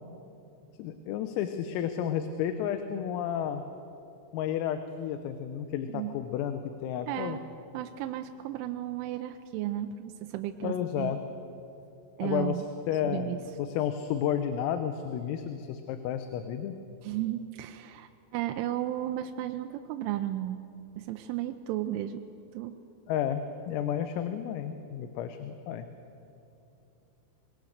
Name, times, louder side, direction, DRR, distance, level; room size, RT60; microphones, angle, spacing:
voice 1, 0.8-3.6 4.3-7.4 10.6-11.2 12.2-16.8 23.1-25.9, left 9 dB, 90° left, 8 dB, 3.6 m, -32 dB
voice 2, 7.1-7.4 7.7-11.2 12.2-12.6 13.0-13.4 17.0-20.6 21.0-22.2 22.5-22.7, right 13 dB, 80° right, 6 dB, 3.0 m, -34 dB
24.5 x 22.0 x 6.6 m, 2.7 s
omnidirectional pair, 5.9 m